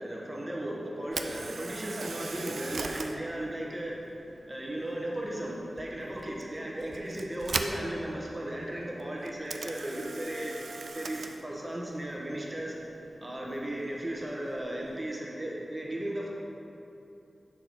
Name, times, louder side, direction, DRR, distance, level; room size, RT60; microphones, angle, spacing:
voice 1, 0.0-4.0 4.5-12.8 13.2-16.3, right 1 dB, 25° right, -3 dB, 1.1 m, -36 dB
Camera, 1.0-15.1, right 3 dB, 80° right, 0.3 m, -42 dB
6.0 x 4.7 x 4.0 m, 2.9 s
wide cardioid pair, 70°, 0 cm